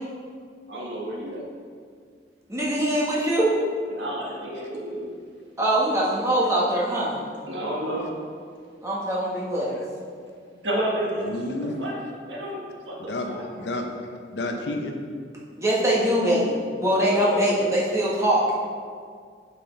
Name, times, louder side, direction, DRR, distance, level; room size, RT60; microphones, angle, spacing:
voice 1, 0.7-1.4 3.9-5.1 7.5-8.1 10.6-11.3 11.6-12.0 12.3-13.4 17.1-17.4, right 1 dB, 80° right, -3 dB, 1.6 m, -30 dB
voice 2, 2.5-3.6 5.6-7.2 8.8-9.7 15.6-16.5 16.8-18.4, right 1 dB, 15° right, -6 dB, 1.4 m, -22 dB
voice 3, 11.2-11.8 13.0-13.9 14.3-15.0, left 2 dB, 70° left, 3 dB, 0.8 m, -30 dB
8.3 x 5.6 x 3.3 m, 2.1 s
head